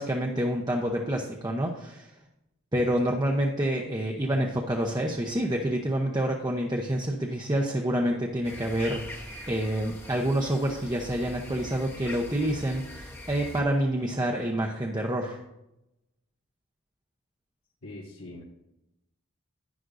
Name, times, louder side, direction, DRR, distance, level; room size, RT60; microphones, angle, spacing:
voice 1, 0.0-2.1 2.7-15.4, right 1 dB, 20° right, 0 dB, 0.8 m, -28 dB
sound 1, 8.4-13.6, left 1 dB, 10° left, 1.0 m, -43 dB
voice 2, 17.8-18.4, left 2 dB, 80° left, -6 dB, 1.7 m, -42 dB
11.0 x 10.0 x 2.6 m, 0.87 s
head